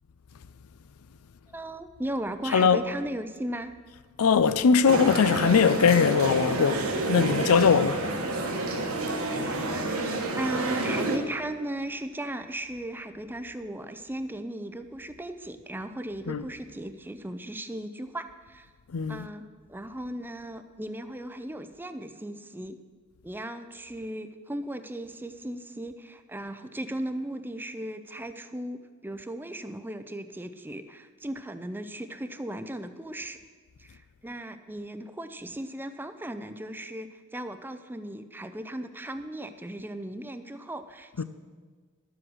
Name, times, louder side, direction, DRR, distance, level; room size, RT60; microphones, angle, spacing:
voice 1, 1.5-3.7 9.3-18.7 19.1-19.4 19.7-22.8 23.2-33.4 33.8-41.2, right 1 dB, 10° right, 0.5 m, -37 dB
voice 2, 4.2-8.0 16.3-16.4 18.9-19.3 41.2-41.3, left 6 dB, 80° left, 0.5 m, -21 dB
sound 1, 4.8-11.2, right 2 dB, 70° right, 1.5 m, -29 dB
12.0 x 7.9 x 6.2 m
head